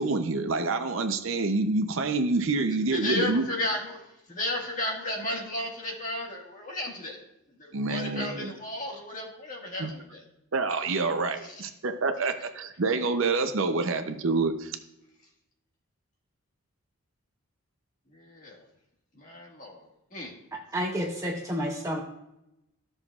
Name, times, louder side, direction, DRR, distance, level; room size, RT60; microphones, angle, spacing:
voice 1, 0.0-3.4 7.7-8.5 9.8-9.9 10.5-14.8, right 3 dB, 65° right, 7 dB, 0.7 m, -27 dB
voice 2, 2.9-7.2 7.5-10.3 11.4-11.7 12.4-12.5 18.1-18.7 19.1-20.3, left 1 dB, 35° left, -2 dB, 1.8 m, -34 dB
voice 3, 20.7-22.0, equal, 15° right, 1 dB, 0.6 m, -30 dB
14.5 x 6.4 x 2.4 m, 0.87 s
head